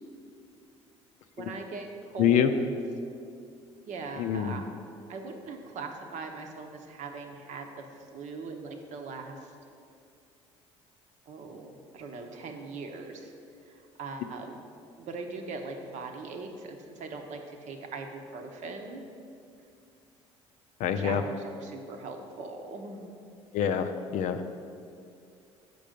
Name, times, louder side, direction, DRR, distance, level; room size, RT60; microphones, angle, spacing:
voice 1, 1.4-2.6 3.8-4.7 5.1-7.9 8.1-9.5 11.3-13.3 13.7-14.6 15.0-19.0 21.0-23.1, right 4 dB, 55° right, 4 dB, 0.9 m, -40 dB
voice 2, 2.2-2.5 4.2-4.6 20.8-21.2 23.5-24.4, left 9 dB, 55° left, 9 dB, 0.5 m, -26 dB
6.6 x 5.3 x 5.1 m, 2.4 s
hypercardioid pair, 55°, 15 cm